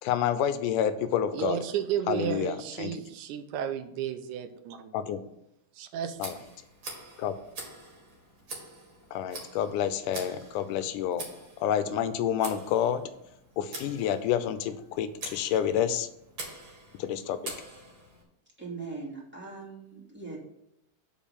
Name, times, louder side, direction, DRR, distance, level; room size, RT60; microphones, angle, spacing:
voice 1, 0.0-1.6 2.1-3.0 4.9-5.2 6.2-6.4 7.2-7.4 9.1-11.3 11.6-13.0 13.6-16.1 17.0-17.5, left 9 dB, 90° left, 2.3 m, -29 dB
voice 2, 1.3-4.9 5.8-6.2, right 9 dB, 90° right, 2.2 m, -33 dB
Tick, 6.2-18.2, right 2 dB, 40° right, 2.4 m, -45 dB
voice 3, 18.6-20.4, right 4 dB, 5° right, 2.3 m, -40 dB
7.2 x 5.1 x 7.2 m
omnidirectional pair, 3.5 m